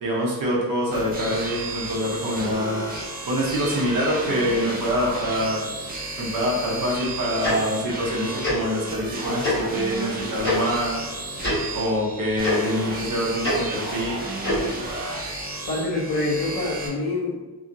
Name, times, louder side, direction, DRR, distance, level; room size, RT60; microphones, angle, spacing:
voice 1, 0.0-2.9 3.3-5.6 6.2-11.0 11.7-14.2, equal, 60° right, -4 dB, 0.7 m, -25 dB
sound 1, 0.9-16.9, right 2 dB, 25° right, 0.5 m, -33 dB
Tick-tock, 7.4-7.5 8.4-8.6 9.4-9.6 10.4-10.5 11.4-11.6 12.4-12.5 13.4-13.5 14.4-14.6, left 1 dB, 30° left, 1.4 m, -24 dB
voice 2, 15.7-17.5, left 2 dB, 65° left, -3 dB, 0.9 m, -26 dB
2.8 x 2.7 x 2.5 m, 1.2 s
wide cardioid pair, 165°, 38 cm